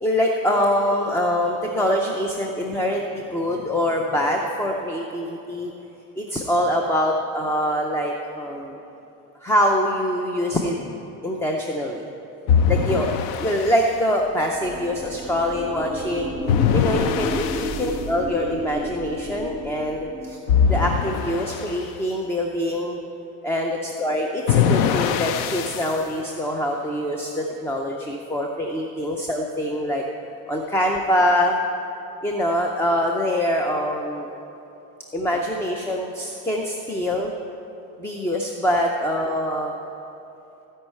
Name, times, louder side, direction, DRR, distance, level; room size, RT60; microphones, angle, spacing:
voice 1, 0.0-5.7 6.2-8.8 9.4-10.8 11.2-12.1 12.7-13.1 13.4-16.3 16.7-17.5 17.8-20.4 20.7-23.0 23.4-30.0 30.5-31.6 32.2-34.3 35.1-37.3 38.0-39.7, equal, 5° left, 1 dB, 0.5 m, -24 dB
sound 1, 12.5-13.9 16.5-18.0 20.5-21.8 24.5-26.0, left 7 dB, 70° left, 0.7 m, -22 dB
sound 2, 14.2-20.4, equal, 20° right, 2.8 m, -32 dB
16.0 x 5.5 x 8.3 m, 2.9 s
cardioid pair, 150°, 40 cm